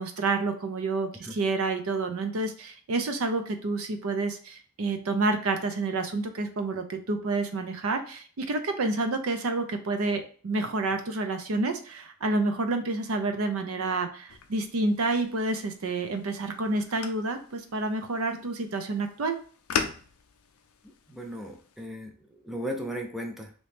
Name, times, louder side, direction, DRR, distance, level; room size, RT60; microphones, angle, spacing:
voice 1, 0.0-19.4, right 3 dB, 70° right, 6 dB, 0.5 m, -29 dB
sound 1, 14.3-21.9, left 6 dB, 80° left, 0.5 m, -39 dB
voice 2, 21.1-23.5, equal, ahead, 1 dB, 0.4 m, -36 dB
3.0 x 2.7 x 3.3 m, 0.42 s
head